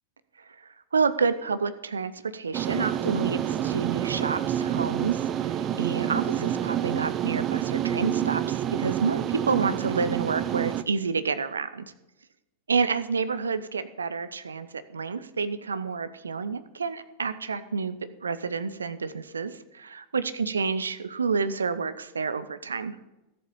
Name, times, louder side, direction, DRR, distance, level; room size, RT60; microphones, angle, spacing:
voice 1, 0.9-5.5 5.8-11.9 12.7-18.0 18.2-22.9, right 5 dB, 75° right, 13 dB, 0.7 m, -29 dB
sound 1, 2.5-10.8, right 11 dB, 30° right, 0.6 m, -28 dB
13.5 x 7.9 x 5.5 m, 0.95 s
figure-of-eight pair, 90°, 0 cm